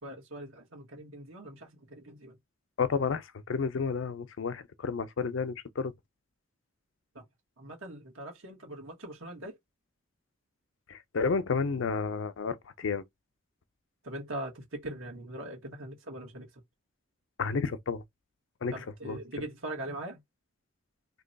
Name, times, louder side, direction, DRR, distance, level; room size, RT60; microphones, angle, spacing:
voice 1, 0.0-2.4 7.1-7.2 7.6-9.6 14.0-16.6 18.7-20.2, right 1 dB, 90° right, 1.3 m, -41 dB
voice 2, 2.8-5.9 10.9-13.0 17.4-18.0 18.6-18.7 19.0-19.2, left 5 dB, 75° left, 0.5 m, -31 dB
2.8 x 2.3 x 3.9 m
head